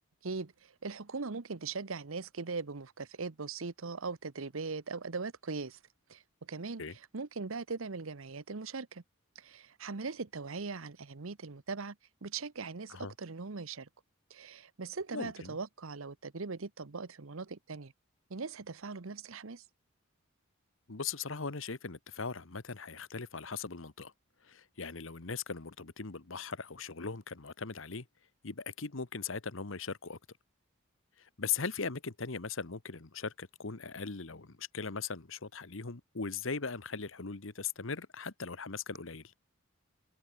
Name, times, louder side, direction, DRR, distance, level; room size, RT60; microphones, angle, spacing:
voice 1, 0.2-5.8 6.1-9.0 9.3-12.0 12.2-13.9 14.3-17.9 18.3-19.6, right 4 dB, 80° right, 1.0 m, -40 dB
voice 2, 15.1-15.6 20.9-24.1 24.4-28.0 28.4-30.2 31.2-39.2, left 5 dB, 65° left, 1.3 m, -39 dB
head